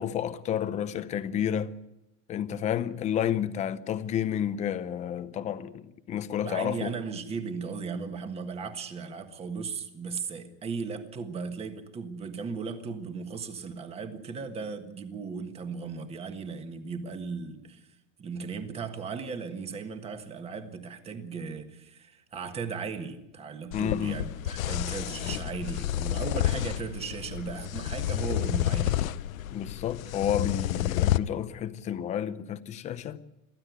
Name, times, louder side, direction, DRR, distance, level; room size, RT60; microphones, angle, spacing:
voice 1, 0.0-1.7 2.3-6.9 23.7-24.2 29.5-33.2, left 9 dB, 15° left, 0.7 m, -30 dB
voice 2, 6.4-17.9 18.2-29.2, right 5 dB, 15° right, 1.5 m, -37 dB
sound 1, 23.7-31.2, left 13 dB, 85° left, 0.9 m, -30 dB
23.0 x 15.0 x 9.3 m
supercardioid pair, 160°, 40 cm